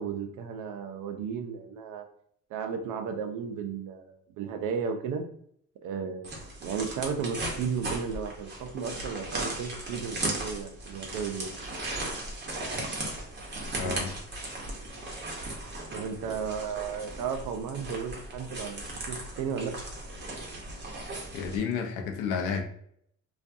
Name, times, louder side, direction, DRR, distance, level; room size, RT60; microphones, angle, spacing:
voice 1, 0.0-2.0 2.5-5.2 5.8-6.4 6.6-11.5 15.9-19.7, right 6 dB, 75° right, 6 dB, 0.5 m, -34 dB
sound 1, 6.2-21.6, right 2 dB, 35° right, 0.8 m, -37 dB
voice 2, 13.8-14.1 21.3-22.6, left 6 dB, 85° left, 4 dB, 0.6 m, -31 dB
2.5 x 2.3 x 2.5 m, 0.66 s
cardioid pair, 110°, 30 cm